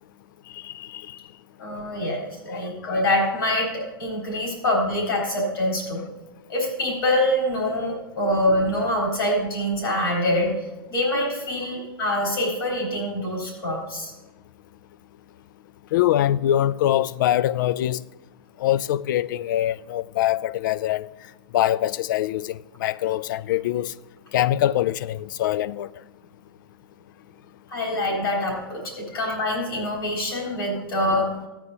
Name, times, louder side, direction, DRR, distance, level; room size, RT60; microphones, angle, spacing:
voice 1, 0.5-1.2 2.9-3.0 15.9-18.0 18.6-21.1 21.5-23.9 24.3-25.9, left 12 dB, 55° left, 0.4 m, -23 dB
voice 2, 1.6-6.0 6.5-10.6 10.9-14.1 27.7-31.3, left 1 dB, 75° left, 3.6 m, -25 dB
16.0 x 8.8 x 2.7 m
hypercardioid pair, 105°, 12 cm